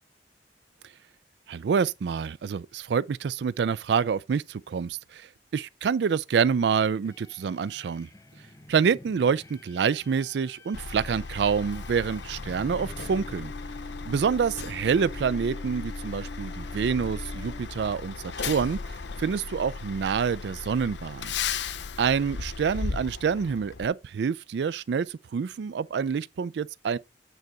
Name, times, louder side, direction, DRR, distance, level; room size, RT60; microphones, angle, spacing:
voice 1, 1.5-8.1 8.7-13.5 14.1-18.8 19.2-21.3 22.0-27.0, right 6 dB, 70° right, 0.4 m, -27 dB
sound 1, 7.0-18.1, left 2 dB, 20° left, 0.5 m, -46 dB
Truck, 10.7-23.9, left 5 dB, 85° left, 0.7 m, -36 dB
9.0 x 4.0 x 4.6 m
head